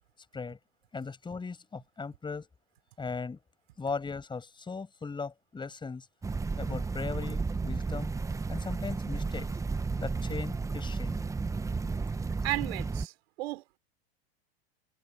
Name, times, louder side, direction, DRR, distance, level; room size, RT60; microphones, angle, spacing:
voice 1, 0.9-2.5 3.0-3.4 3.8-6.1 6.6-8.1 8.5-9.5 10.0-11.2, left 4 dB, 15° left, 5.9 m, -38 dB
sound 1, 6.2-13.1, right 4 dB, 10° right, 1.0 m, -33 dB
voice 2, 12.4-13.8, right 20 dB, 70° right, 3.2 m, -34 dB
supercardioid pair, 125°, 32 cm